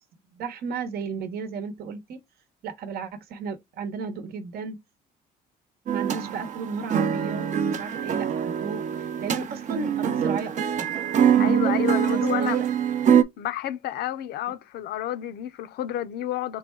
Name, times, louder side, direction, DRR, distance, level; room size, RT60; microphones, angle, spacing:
voice 1, 0.3-2.2 2.6-4.8 5.9-10.9 11.4-12.7, right 5 dB, 65° right, 0.9 m, -34 dB
sound 1, 5.9-13.2, right 9 dB, 45° right, 0.6 m, -24 dB
voice 2, 11.4-12.6 13.4-16.6, left 12 dB, 75° left, 0.6 m, -30 dB
3.9 x 2.3 x 4.4 m
cardioid pair, 110°, 17 cm